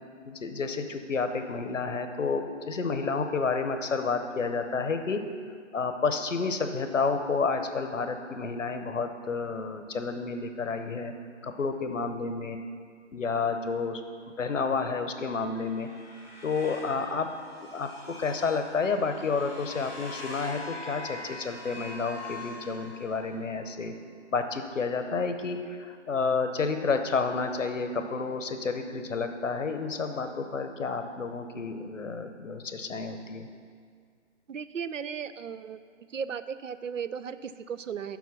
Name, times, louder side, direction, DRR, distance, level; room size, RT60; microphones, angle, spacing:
voice 1, 0.3-5.2 5.7-11.1 11.4-12.6 13.1-14.0 14.4-15.9 16.4-17.3 17.7-24.0 24.3-33.5, left 4 dB, 75° left, 7 dB, 0.9 m, -30 dB
sound 1, 15.2-23.5, left 2 dB, 10° right, 0.9 m, -44 dB
voice 2, 34.5-35.8 36.1-38.2, right 7 dB, 85° right, 13 dB, 0.5 m, -36 dB
7.2 x 5.7 x 5.8 m, 2.1 s
figure-of-eight pair, 140°, 38 cm